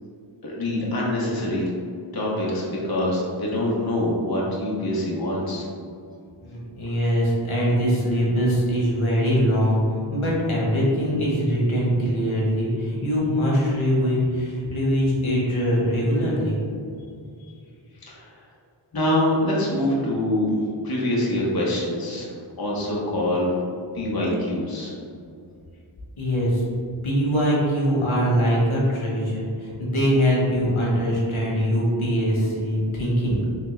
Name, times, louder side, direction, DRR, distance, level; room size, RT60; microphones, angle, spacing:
voice 1, 0.4-1.7 2.1-5.7 17.4-17.5 18.0-18.3 18.9-20.5 20.8-22.3 22.6-23.6 23.9-24.9, left 1 dB, 50° left, -4 dB, 0.8 m, -25 dB
voice 2, 6.4-16.6 26.2-26.6 27.0-33.4, equal, 90° left, -5 dB, 1.0 m, -22 dB
3.3 x 3.2 x 3.1 m, 2.4 s
wide cardioid pair, 50°, 47 cm